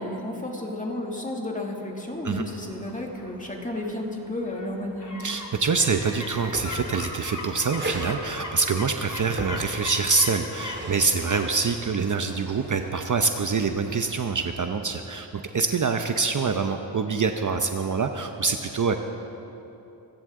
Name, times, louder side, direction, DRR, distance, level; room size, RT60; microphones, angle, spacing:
voice 1, 0.0-5.2, left 1 dB, 15° left, 0 dB, 2.4 m, -32 dB
sound 1, 2.1-15.0 15.3-15.4, left 2 dB, 40° left, 2.3 m, -41 dB
voice 2, 5.2-19.0, right 4 dB, 45° right, 6 dB, 0.8 m, -25 dB
sound 2, 6.3-7.2 7.7-8.2 9.2-10.1 10.5-11.1 12.2-12.9, right 2 dB, 25° right, 2.4 m, -36 dB
23.0 x 14.5 x 3.8 m, 2.9 s
cardioid pair, 80°, 45 cm